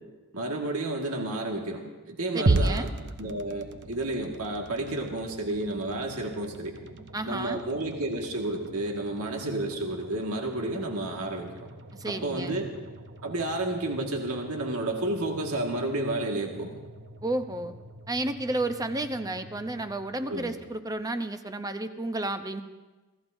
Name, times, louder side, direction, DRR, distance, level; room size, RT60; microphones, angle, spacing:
voice 1, 0.3-2.9 3.2-6.8 7.2-11.5 12.1-12.7 13.2-16.7 20.3-20.5, right 2 dB, 75° right, 1 dB, 1.8 m, -31 dB
voice 2, 2.3-2.9 7.1-7.6 11.9-12.6 17.2-17.7 18.1-22.6, right 2 dB, 15° right, 8 dB, 0.7 m, -32 dB
sound 1, 2.5-20.7, right 2 dB, 55° right, 0.9 m, -37 dB
27.0 x 16.0 x 2.7 m, 1.2 s
head